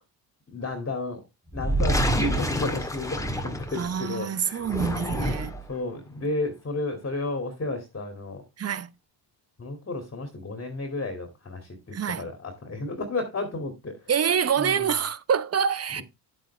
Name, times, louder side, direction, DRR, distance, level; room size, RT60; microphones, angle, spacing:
voice 1, 0.5-1.2 1.5-5.3 5.7-8.4 9.6-14.1 14.6-15.0 16.0-16.1, left 2 dB, 25° left, 2.5 m, -33 dB
sound 1, 1.5-4.1 4.6-5.7, equal, 5° left, 1.7 m, -27 dB
voice 2, 3.7-5.5 8.6-8.9 11.9-12.2 14.1-16.0, right 7 dB, 30° right, 0.9 m, -26 dB
8.9 x 7.9 x 3.3 m
supercardioid pair, 75°, 48 cm